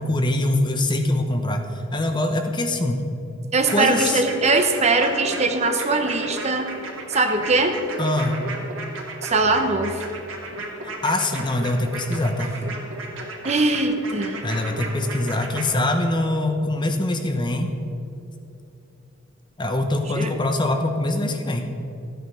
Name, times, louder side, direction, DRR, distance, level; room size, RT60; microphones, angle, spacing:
voice 1, 0.0-3.1 3.7-4.2 8.0-8.4 11.0-12.5 14.4-17.7 19.6-21.7, left 1 dB, 20° left, 5 dB, 0.9 m, -23 dB
voice 2, 3.5-6.7 7.1-7.8 9.2-10.0 13.4-14.4 20.1-20.3, right 3 dB, 35° right, 6 dB, 1.0 m, -21 dB
sound 1, 3.7-15.6, right 2 dB, 70° right, 2.4 m, -34 dB
14.0 x 9.3 x 5.7 m, 2.7 s
head